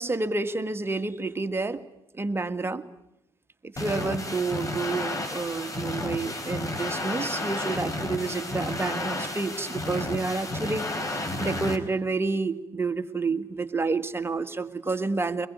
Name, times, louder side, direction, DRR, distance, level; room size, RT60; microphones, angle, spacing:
voice 1, 0.0-1.8 2.1-2.8 3.6-15.5, right 3 dB, 20° right, 8 dB, 1.8 m, -29 dB
sound 1, 3.8-11.8, left 2 dB, 30° left, 4.2 m, -32 dB
24.0 x 20.5 x 9.5 m, 0.87 s
hypercardioid pair, 55°, 12 cm